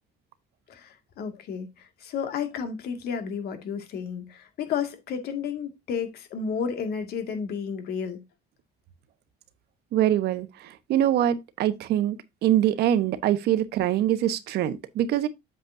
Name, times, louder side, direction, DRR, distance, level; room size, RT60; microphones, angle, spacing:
voice 1, 0.7-8.2, left 6 dB, 70° left, 2.1 m, -32 dB
voice 2, 9.9-12.2 12.4-15.3, right 12 dB, 75° right, 1.1 m, -24 dB
8.0 x 7.7 x 2.7 m
cardioid pair, 110°, 17 cm